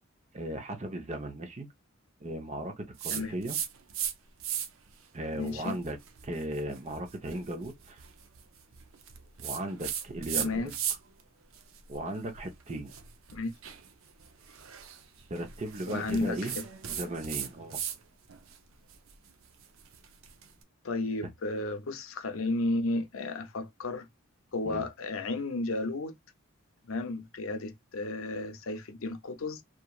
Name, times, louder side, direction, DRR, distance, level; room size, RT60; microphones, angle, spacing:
voice 1, 0.3-1.7 2.2-3.6 5.1-6.0 6.2-8.0 9.4-10.7 11.9-12.9 15.3-16.6 16.8-17.8 21.2-21.3 24.6-24.9, right 1 dB, 35° right, 0.7 m, -37 dB
sound 1, 3.0-4.1 4.4-4.9 5.4-11.2 11.5-18.0 18.3-20.5, right 9 dB, 75° right, 0.6 m, -38 dB
voice 2, 5.3-5.8 10.3-10.7 13.3-13.5 15.8-16.6 20.8-24.1 24.5-26.2 26.8-29.6, left 2 dB, 80° left, 0.6 m, -33 dB
3.0 x 2.4 x 2.3 m
head